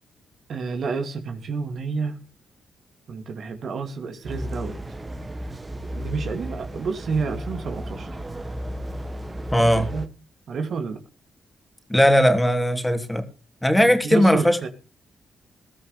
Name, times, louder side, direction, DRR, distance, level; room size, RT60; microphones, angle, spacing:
voice 1, 0.5-2.2 3.1-4.8 5.9-8.1 9.7-10.1 10.5-11.0 13.8-14.7, right 5 dB, 65° right, 6 dB, 2.4 m, -29 dB
sound 1, 4.2-10.1, equal, 25° right, 1.4 m, -34 dB
voice 2, 9.5-9.9 11.9-13.2 13.6-14.6, equal, 10° left, 6 dB, 3.0 m, -18 dB
20.0 x 13.5 x 3.3 m, 0.35 s
cardioid pair, 70°, 0 cm